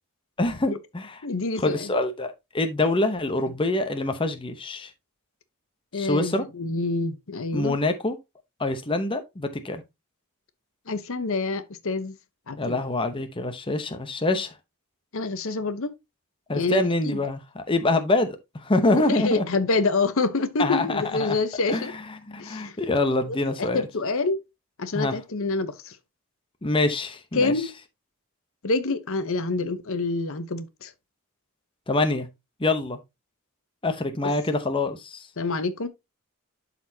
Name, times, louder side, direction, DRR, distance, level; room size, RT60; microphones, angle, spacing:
voice 1, 0.4-1.2 1.6-4.9 5.9-6.4 7.5-8.2 8.6-9.8 12.6-14.5 16.5-19.4 20.6-21.4 21.7-23.9 24.9-25.1 26.6-27.5 31.9-32.3 32.6-33.0 33.8-35.3, left 2 dB, 25° left, 0.8 m, -25 dB
voice 2, 1.2-1.9 5.9-7.8 10.9-12.2 12.5-12.8 15.1-15.9 16.5-17.2 18.8-21.9 22.4-22.8 23.6-24.4 24.8-26.0 27.3-27.7 28.6-30.9 35.4-35.9, left 3 dB, 65° left, 0.8 m, -27 dB
12.0 x 4.2 x 2.7 m
head